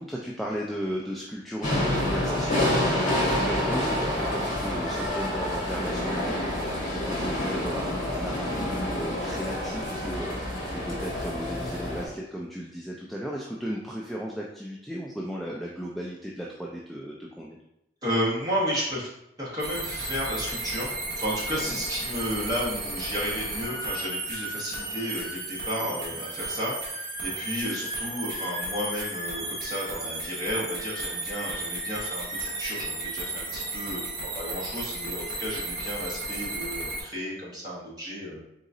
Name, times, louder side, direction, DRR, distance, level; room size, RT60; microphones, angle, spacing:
voice 1, 0.0-17.6 21.6-21.8 25.8-26.0, equal, ahead, -4 dB, 0.3 m, -35 dB
sound 1, 1.6-12.0, left 1 dB, 45° left, 1.2 m, -28 dB
voice 2, 18.0-19.1 19.4-38.4, equal, 20° right, -7 dB, 1.3 m, -32 dB
sound 2, 19.6-37.0, right 2 dB, 55° right, 1.2 m, -34 dB
4.0 x 3.7 x 2.6 m, 0.82 s
head